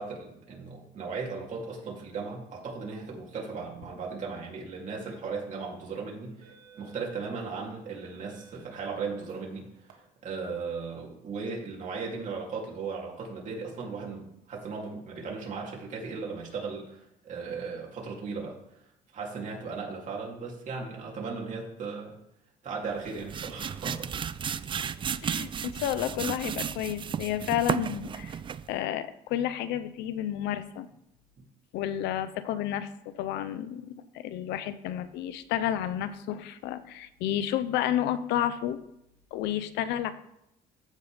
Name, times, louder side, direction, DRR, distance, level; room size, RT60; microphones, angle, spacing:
voice 1, 0.0-18.6 19.1-22.1 22.6-24.1 27.4-27.6 27.9-28.0, right 4 dB, 45° right, -2 dB, 2.9 m, -37 dB
sound 1, 6.1-9.9, right 5 dB, 80° right, 1.4 m, -57 dB
sound 2, 22.9-28.8, right 7 dB, 30° right, 0.4 m, -33 dB
voice 2, 25.2-28.4 28.7-30.9 31.7-32.9 33.1-38.8 39.3-40.1, left 11 dB, 85° left, 13 dB, 0.6 m, -31 dB
14.5 x 5.6 x 3.4 m, 0.80 s
cardioid pair, 110°, 17 cm